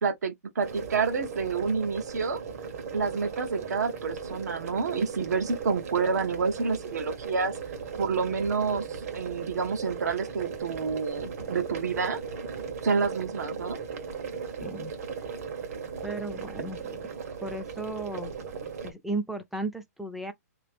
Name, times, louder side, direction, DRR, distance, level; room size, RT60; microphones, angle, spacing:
voice 1, 0.0-2.4 2.9-7.5 8.0-12.2 12.8-13.8, right 5 dB, 75° right, 1.1 m, -29 dB
sound 1, 0.6-18.9, right 6 dB, 60° right, 1.3 m, -37 dB
voice 2, 14.6-14.9 16.0-17.0 17.4-20.3, right 2 dB, 5° right, 0.5 m, -35 dB
3.0 x 2.8 x 3.3 m
hypercardioid pair, 140°, 9 cm